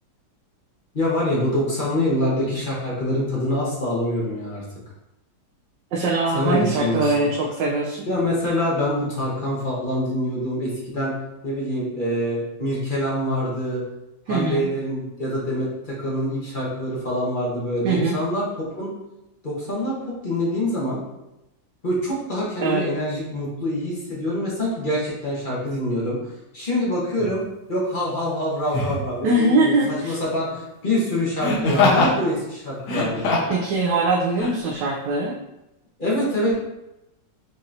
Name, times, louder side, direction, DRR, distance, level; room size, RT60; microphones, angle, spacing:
voice 1, 0.9-4.6 6.3-7.3 8.1-11.1 11.4-13.8 14.3-18.5 18.8-18.9 19.4-21.0 21.8-27.4 27.7-33.5 36.0-36.7, left 1 dB, 35° left, -6 dB, 0.8 m, -25 dB
voice 2, 5.9-8.1 14.3-14.7 17.8-18.1 22.6-22.8 29.2-30.1 33.5-35.4, right 2 dB, 80° right, -2 dB, 1.3 m, -22 dB
Laughter, 27.2-27.4 28.7-29.1 31.4-32.2 32.8-33.6 34.4-34.5, left 3 dB, 70° left, 1.4 m, -21 dB
5.2 x 2.8 x 2.5 m, 0.91 s
omnidirectional pair, 1.9 m